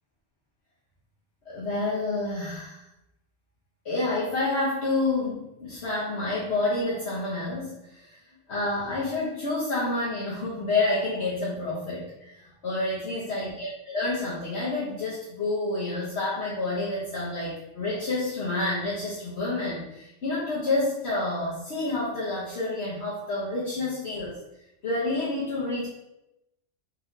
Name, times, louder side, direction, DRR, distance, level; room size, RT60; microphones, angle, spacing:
voice 1, 1.4-2.8 3.8-8.2 8.5-24.4 24.8-25.9, left 2 dB, 60° left, -7 dB, 1.2 m, -29 dB
4.1 x 3.2 x 3.9 m, 0.89 s
omnidirectional pair, 1.3 m